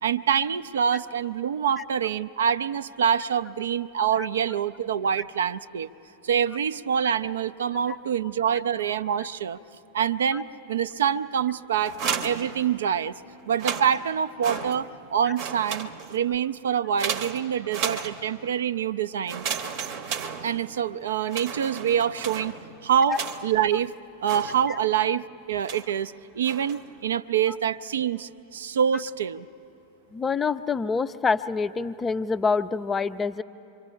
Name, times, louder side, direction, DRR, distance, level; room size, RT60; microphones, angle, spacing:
voice 1, 0.0-5.9 6.2-9.6 9.9-11.9 12.2-13.1 13.5-19.5 20.4-22.5 22.8-23.9 24.2-29.5, right 8 dB, 65° right, 14 dB, 0.4 m, -26 dB
sound 1, 11.8-13.1 13.5-15.1 15.3-16.3 17.0-18.5 19.3-20.9 21.3-23.7 24.3-25.0 25.6-26.0 26.4-26.9, right 6 dB, 45° right, 0.8 m, -34 dB
voice 2, 30.1-33.4, left 5 dB, 20° left, 13 dB, 0.4 m, -26 dB
27.0 x 24.0 x 4.4 m, 2.9 s
figure-of-eight pair, 90°, 0 cm